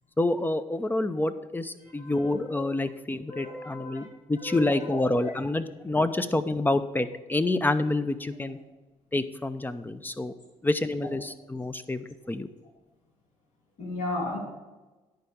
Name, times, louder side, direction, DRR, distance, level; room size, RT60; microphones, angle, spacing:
voice 1, 0.2-8.6 9.1-10.3 10.6-12.5, left 2 dB, 15° left, 11 dB, 0.7 m, -28 dB
voice 2, 1.8-2.5 3.3-4.0 4.4-5.0 13.8-14.4, left 2 dB, 70° left, -3 dB, 2.8 m, -35 dB
10.5 x 4.6 x 6.7 m, 1.2 s
cardioid pair, 75°, 13 cm